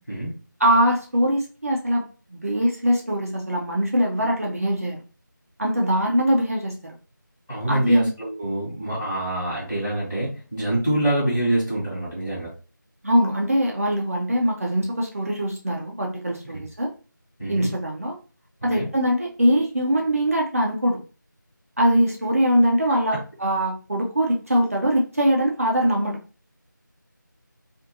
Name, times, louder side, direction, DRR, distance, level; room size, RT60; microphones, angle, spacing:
voice 1, 0.6-2.0 2.3-5.0 5.6-6.9 7.7-8.1 13.0-16.9 17.5-18.1 18.6-21.0 21.8-26.2, equal, 45° right, -1 dB, 0.5 m, -22 dB
voice 2, 7.5-12.5 17.4-17.7 18.7-18.9, right 1 dB, 5° left, -16 dB, 1.0 m, -25 dB
2.5 x 2.5 x 2.7 m, 0.35 s
figure-of-eight pair, 170°, 11 cm